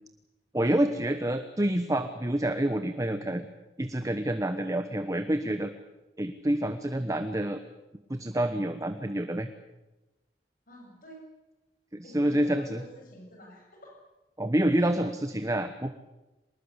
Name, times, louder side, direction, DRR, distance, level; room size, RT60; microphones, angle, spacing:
voice 1, 0.5-3.5 3.8-5.7 6.2-7.6 8.1-9.5 11.9-12.8 14.4-15.9, right 1 dB, 20° right, 8 dB, 1.1 m, -28 dB
voice 2, 10.7-11.2 12.0-14.0, equal, 55° left, 0 dB, 7.7 m, -48 dB
25.0 x 20.5 x 8.1 m, 1.0 s
head